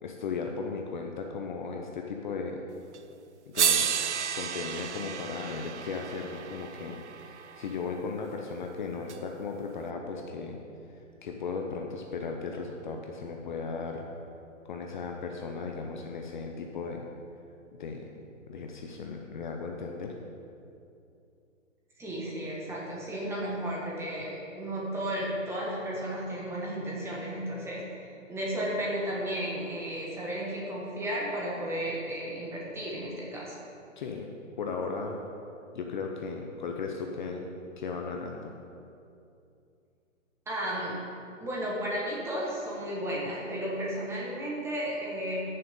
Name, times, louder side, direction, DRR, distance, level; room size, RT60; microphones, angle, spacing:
voice 1, 0.0-2.6 3.5-3.9 4.3-10.6 11.2-14.1 14.6-17.1 17.8-18.2 18.5-20.1 34.0-34.3 34.6-35.2 35.7-38.6, left 4 dB, 40° left, 2 dB, 0.8 m, -36 dB
sound 1, 2.9-3.0 3.6-7.8 9.1-9.2, right 8 dB, 60° right, 0.7 m, -31 dB
voice 2, 22.0-33.6 40.5-41.0 41.4-45.4, equal, 5° right, -5 dB, 1.4 m, -33 dB
14.0 x 6.8 x 3.8 m, 2.6 s
hypercardioid pair, 140°, 39 cm